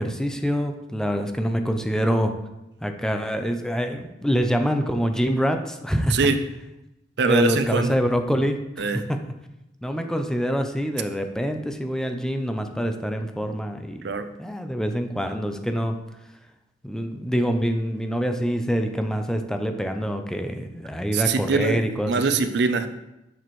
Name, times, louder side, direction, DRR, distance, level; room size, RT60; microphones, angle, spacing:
voice 1, 0.0-2.3 2.8-6.2 7.2-9.2 9.8-14.1 14.4-15.9 16.8-22.2, equal, 5° left, 6 dB, 0.5 m, -25 dB
voice 2, 7.2-7.9 8.8-9.0 14.0-14.3 21.1-21.8 22.1-22.9, right 4 dB, 65° right, 9 dB, 0.5 m, -22 dB
6.8 x 6.1 x 3.1 m, 0.92 s
head